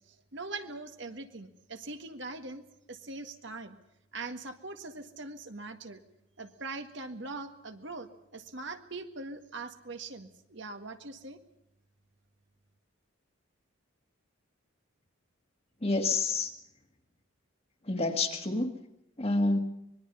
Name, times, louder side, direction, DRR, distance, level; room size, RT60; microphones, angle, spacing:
voice 1, 0.1-3.8 4.1-6.0 6.4-11.4, right 3 dB, 55° right, 6 dB, 1.8 m, -42 dB
voice 2, 15.8-16.5 17.8-18.7 19.2-19.6, left 3 dB, 30° left, 5 dB, 1.9 m, -28 dB
25.0 x 21.5 x 5.5 m, 0.83 s
head